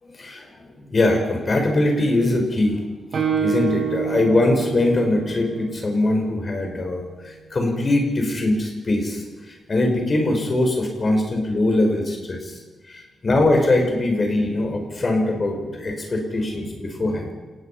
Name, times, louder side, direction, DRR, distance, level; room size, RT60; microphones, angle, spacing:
voice 1, 0.0-2.8 3.4-12.6 12.9-17.3, left 2 dB, 30° left, 2 dB, 5.6 m, -22 dB
Guitar, 3.1-6.8, right 7 dB, 50° right, 5.7 m, -28 dB
29.0 x 19.5 x 5.9 m, 1.2 s
wide cardioid pair, 155°, 0 cm